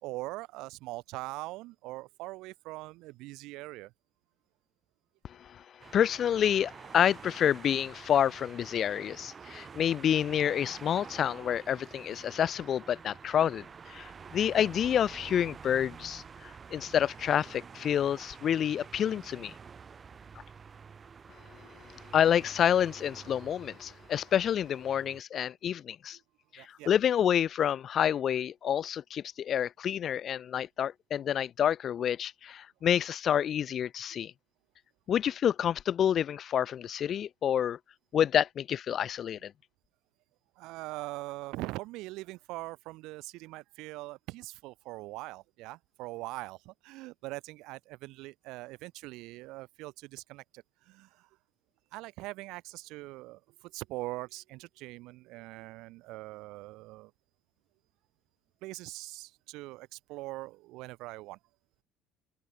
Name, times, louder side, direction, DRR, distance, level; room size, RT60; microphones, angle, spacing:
voice 1, 0.0-3.9 26.6-26.9 40.6-51.3 51.9-57.1 58.6-61.4, right 20 dB, 75° right, 2.3 m, -42 dB
sound 1, 5.8-25.2, right 6 dB, 35° right, 1.6 m, -49 dB
voice 2, 5.9-19.5 22.1-26.2 26.5-34.3 35.1-37.8 38.1-39.5, left 9 dB, 50° left, 0.7 m, -28 dB
open air
supercardioid pair, 80°, 0 cm